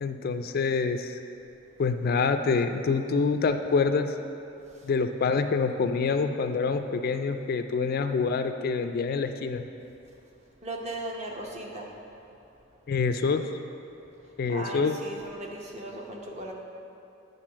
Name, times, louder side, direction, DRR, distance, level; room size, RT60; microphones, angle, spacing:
voice 1, 0.0-1.2 1.8-4.1 4.8-9.7 12.9-13.5 14.4-15.0, left 4 dB, 50° left, 8 dB, 0.3 m, -26 dB
voice 2, 10.6-11.9 14.2-16.5, right 1 dB, 35° right, -1 dB, 0.9 m, -38 dB
9.2 x 3.9 x 6.2 m, 2.8 s
head